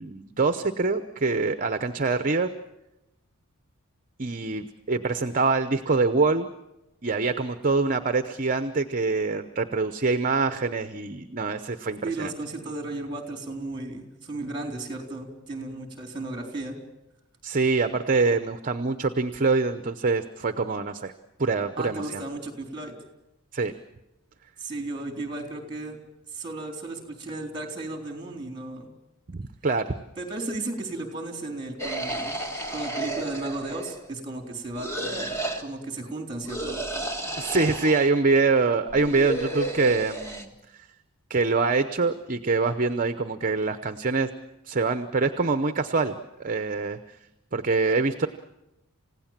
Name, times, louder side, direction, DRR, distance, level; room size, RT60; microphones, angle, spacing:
voice 1, 0.0-2.5 4.2-6.5 7.0-12.3 17.4-21.1 21.4-22.2 23.5-23.7 29.3-30.0 37.4-40.5 41.3-44.3 44.7-47.0 47.5-48.3, right 4 dB, 35° right, 9 dB, 0.8 m, -25 dB
voice 2, 12.0-16.8 21.8-22.9 24.6-26.0 26.3-28.9 30.2-32.4 32.7-36.8, right 2 dB, 20° right, 4 dB, 3.7 m, -34 dB
sound 1, 31.8-34.1 34.8-35.6 36.5-38.1 38.9-40.5, right 1 dB, 10° left, 1.8 m, -32 dB
29.0 x 16.5 x 7.4 m, 0.95 s
head